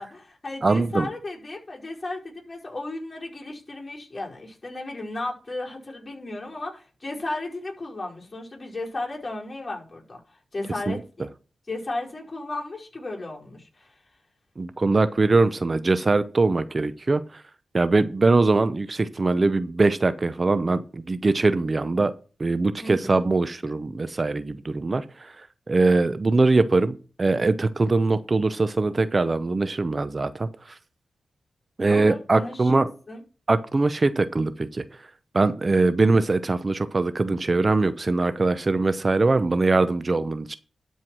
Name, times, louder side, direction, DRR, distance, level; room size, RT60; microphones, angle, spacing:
voice 1, 0.0-10.2 10.5-11.3 11.7-13.9 22.8-23.2 31.9-33.2, left 2 dB, 35° left, -3 dB, 5.1 m, -35 dB
voice 2, 0.6-1.1 10.9-11.0 14.6-17.2 17.7-22.1 22.4-25.3 25.7-30.5 31.8-32.9 33.5-34.8 35.3-40.5, right 3 dB, 40° right, 13 dB, 0.7 m, -22 dB
12.5 x 4.7 x 6.1 m, 0.36 s
cardioid pair, 50°, 0 cm